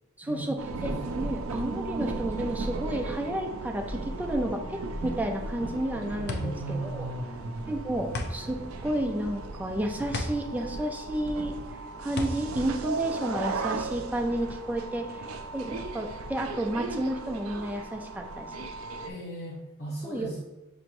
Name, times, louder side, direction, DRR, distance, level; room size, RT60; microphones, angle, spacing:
voice 1, 0.2-7.1 7.7-11.6 12.0-15.2 15.5-18.7 20.0-20.3, right 1 dB, 10° right, 2 dB, 0.5 m, -31 dB
sound 1, 0.6-19.1, right 3 dB, 90° right, 0.4 m, -36 dB
voice 2, 0.8-1.2 6.3-7.4 19.0-20.4, right 1 dB, 70° left, -8 dB, 1.3 m, -37 dB
sound 2, 5.5-13.8, left 2 dB, 55° left, 0.5 m, -37 dB
6.4 x 2.9 x 2.6 m, 1.0 s
head